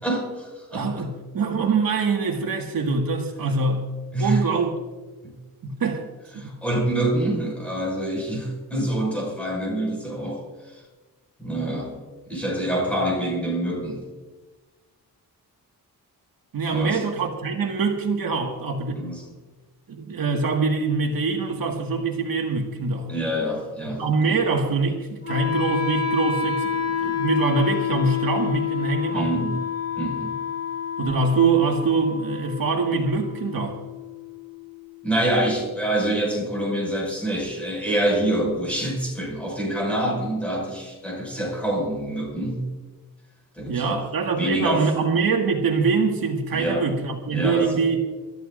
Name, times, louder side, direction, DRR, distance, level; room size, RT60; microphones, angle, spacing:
voice 1, 0.0-1.1 4.1-4.4 5.2-5.3 6.4-10.8 11.4-12.0 12.3-14.0 16.7-17.0 19.0-19.3 23.1-24.4 29.1-29.6 30.0-30.3 35.0-42.7 43.5-44.0 44.4-44.9 46.5-46.9 47.3-47.8, right 1 dB, 5° left, -2 dB, 5.8 m, -26 dB
voice 2, 0.7-3.9 4.2-4.7 5.6-6.0 6.3-6.6 7.3-7.4 16.5-19.0 19.9-23.1 24.0-29.6 31.0-33.8 43.7-48.0, right 4 dB, 70° right, 1 dB, 1.8 m, -24 dB
Wind instrument woodwind instrument, 25.2-35.2, left 8 dB, 40° left, 2.0 m, -29 dB
27.0 x 13.5 x 2.5 m, 1.3 s
wide cardioid pair, 175°, 36 cm